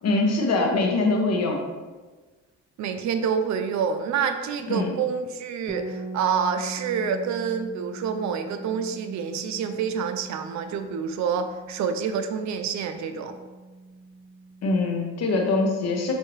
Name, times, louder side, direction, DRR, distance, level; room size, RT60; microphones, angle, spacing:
voice 1, 0.0-1.6 4.7-4.9 14.6-16.1, left 2 dB, 60° left, 1 dB, 0.9 m, -23 dB
voice 2, 2.8-13.3, right 6 dB, 70° right, 8 dB, 0.5 m, -27 dB
sound 1, 5.7-15.4, right 2 dB, 20° left, 1.1 m, -41 dB
6.1 x 2.7 x 3.1 m, 1.3 s
cardioid pair, 90°, 30 cm